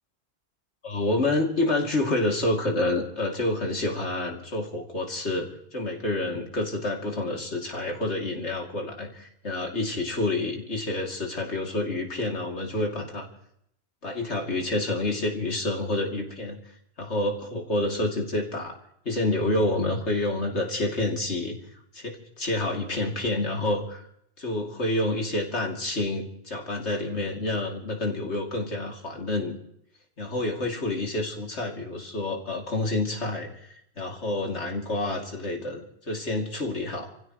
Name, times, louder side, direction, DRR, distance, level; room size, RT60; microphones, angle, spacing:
voice 1, 0.8-13.3 14.0-18.8 19.0-21.6 21.9-24.1 24.4-29.5 30.2-37.1, left 2 dB, 85° left, 1 dB, 3.1 m, -28 dB
29.0 x 16.0 x 3.1 m, 0.72 s
omnidirectional pair, 1.1 m